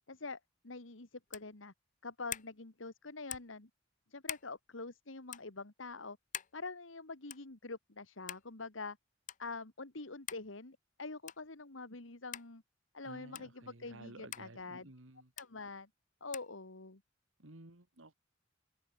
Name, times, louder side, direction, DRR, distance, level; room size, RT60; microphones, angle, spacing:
voice 1, 0.1-1.7 2.0-3.7 4.1-6.2 6.5-9.0 9.4-12.6 12.9-14.9 15.4-15.9 16.2-17.0, left 3 dB, 85° left, 2.0 m, -45 dB
sound 1, 1.3-1.5 2.3-2.5 3.3-3.6 4.2-4.5 5.3-5.5 6.3-6.6 7.3-7.5 8.3-8.5 9.3-9.4 10.3-10.5 11.3-11.5 12.3-12.5 13.3-13.5 14.3-14.5 15.4-15.5 16.3-16.5, left 11 dB, 40° left, 0.7 m, -44 dB
voice 2, 13.0-15.3 17.4-18.1, right 2 dB, 85° right, 2.6 m, -54 dB
head